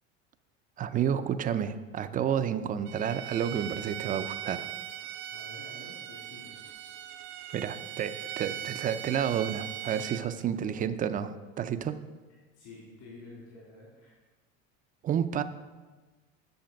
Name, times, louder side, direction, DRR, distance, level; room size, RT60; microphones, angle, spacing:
voice 1, 0.8-4.7 7.5-12.0 15.0-15.4, right 8 dB, 25° right, 11 dB, 0.4 m, -30 dB
Bowed string instrument, 2.8-10.2, right 11 dB, 75° right, 0.8 m, -40 dB
voice 2, 5.3-6.5 12.6-14.1, left 2 dB, 65° left, -5 dB, 3.2 m, -49 dB
10.5 x 6.5 x 5.2 m, 1.3 s
supercardioid pair, 130°, 32 cm